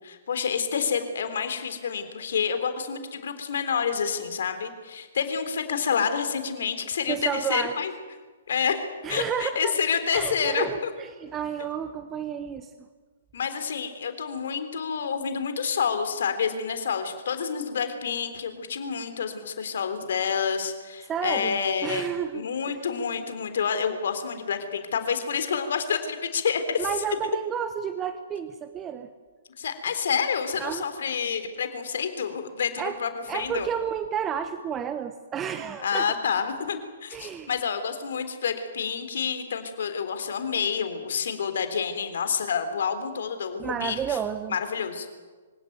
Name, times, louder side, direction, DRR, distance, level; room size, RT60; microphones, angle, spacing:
voice 1, 0.0-7.9 8.5-8.8 9.1-10.9 13.3-26.9 29.6-33.7 35.8-44.2 44.5-45.2, left 6 dB, 65° left, 9 dB, 3.6 m, -28 dB
voice 2, 7.1-7.7 9.0-9.7 10.1-12.7 21.0-22.8 26.8-29.1 30.6-30.9 32.8-33.0 33.3-36.1 37.1-37.5 43.6-44.6, right 8 dB, 20° right, 9 dB, 1.2 m, -31 dB
25.0 x 17.0 x 9.3 m, 1.4 s
figure-of-eight pair, 125°, 0 cm